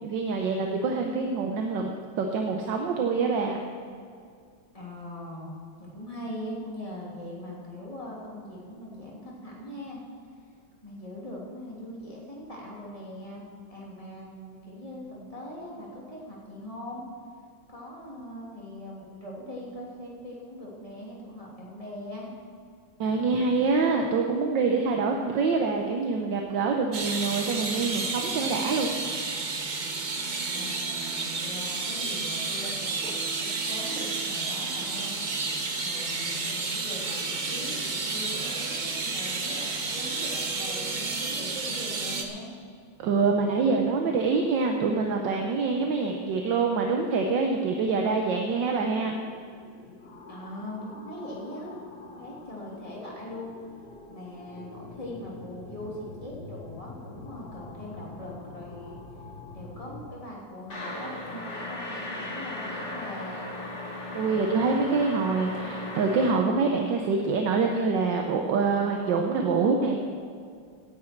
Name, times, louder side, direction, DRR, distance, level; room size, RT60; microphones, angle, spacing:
voice 1, 0.0-1.9 2.2-3.6 23.0-28.9 43.0-49.1 64.1-70.0, right 4 dB, 70° right, 3 dB, 1.6 m, -25 dB
voice 2, 4.7-10.0 10.8-13.4 13.7-17.0 17.7-22.4 30.5-32.9 33.4-35.5 35.8-42.5 50.3-51.8 52.1-53.5 54.1-59.0 59.5-63.5, left 1 dB, 15° left, -5 dB, 3.0 m, -41 dB
sound 1, 26.9-42.3, right 3 dB, 40° right, 0.7 m, -31 dB
sound 2, 48.4-60.1, left 3 dB, 60° left, 1.7 m, -46 dB
sound 3, 60.7-66.4, left 1 dB, 35° left, 2.3 m, -36 dB
17.5 x 9.8 x 4.6 m, 2.2 s
omnidirectional pair, 2.1 m